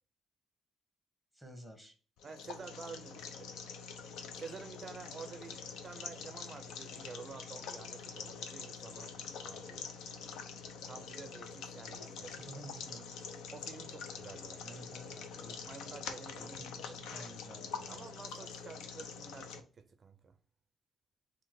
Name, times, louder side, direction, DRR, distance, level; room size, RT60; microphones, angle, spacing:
voice 1, 1.3-1.9 12.1-13.1 14.6-15.7 16.3-18.1, right 1 dB, 5° left, 1.2 m, -51 dB
sound 1, 2.2-19.6, left 6 dB, 85° left, 0.5 m, -45 dB
voice 2, 2.2-3.5 4.4-10.0 10.8-12.3 13.5-14.6 15.7-16.9 17.9-20.3, right 5 dB, 40° right, 0.4 m, -50 dB
3.7 x 2.5 x 4.5 m
cardioid pair, 90°, 0 cm